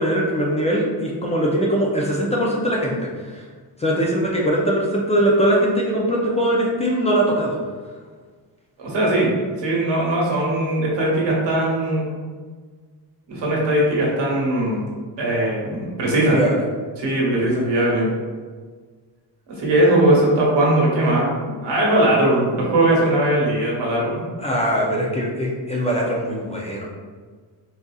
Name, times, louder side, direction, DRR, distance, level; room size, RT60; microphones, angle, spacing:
voice 1, 0.0-3.4 3.8-7.6 16.3-16.6 17.5-17.6 24.4-26.9, right 1 dB, 15° left, -3 dB, 0.4 m, -21 dB
voice 2, 8.8-12.1 13.3-14.9 15.2-16.4 17.0-18.1 19.6-21.3 21.6-24.3, right 1 dB, 80° right, -4 dB, 1.2 m, -19 dB
4.0 x 2.5 x 2.3 m, 1.5 s
cardioid pair, 125°, 41 cm